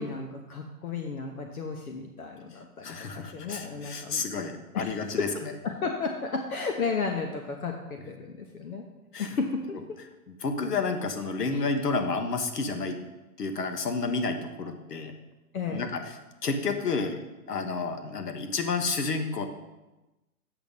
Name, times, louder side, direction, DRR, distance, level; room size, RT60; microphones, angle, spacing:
voice 1, 0.0-4.2 4.7-8.9 9.2-9.8 11.5-11.6 15.5-15.9, left 4 dB, 65° left, 3 dB, 1.1 m, -33 dB
voice 2, 2.8-5.3 9.1-9.3 10.3-13.0 13.4-15.1 15.7-16.0 16.4-17.2 17.5-19.5, left 4 dB, 85° left, 7 dB, 1.5 m, -30 dB
8.1 x 6.2 x 5.3 m, 1.0 s
hypercardioid pair, 170°, 46 cm